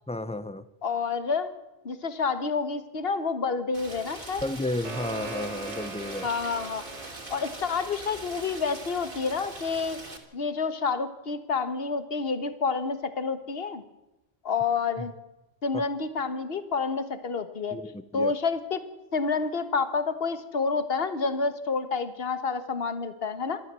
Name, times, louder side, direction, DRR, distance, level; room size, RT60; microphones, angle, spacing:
voice 1, 0.1-0.6 4.4-6.3 15.7-15.8 17.7-18.3, left 1 dB, 5° left, 14 dB, 0.7 m, -32 dB
voice 2, 0.8-1.5 1.8-4.4 6.2-6.8 7.3-10.0 10.3-13.8 14.4-15.1 15.6-18.8 19.1-23.6, left 4 dB, 55° left, 11 dB, 1.6 m, -29 dB
Rain, 3.7-10.2, right 2 dB, 45° right, 2.9 m, -42 dB
sound 1, 4.4-9.5, right 4 dB, 70° right, 2.2 m, -42 dB
26.5 x 13.5 x 7.6 m, 0.97 s
omnidirectional pair, 1.2 m